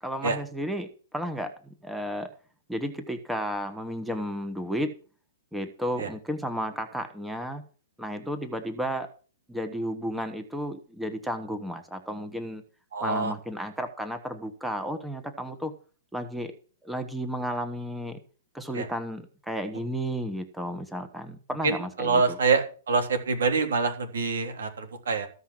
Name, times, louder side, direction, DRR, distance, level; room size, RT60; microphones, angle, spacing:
voice 1, 0.0-2.3 2.7-4.9 5.5-7.6 8.0-9.1 9.5-12.6 13.0-15.7 16.1-16.5 16.8-18.2 18.5-22.4, equal, 5° right, 8 dB, 1.1 m, -33 dB
voice 2, 12.9-13.3 18.7-18.9 21.6-25.3, right 4 dB, 85° right, 6 dB, 3.4 m, -26 dB
14.5 x 5.7 x 7.5 m, 0.38 s
hypercardioid pair, 155°, 0 cm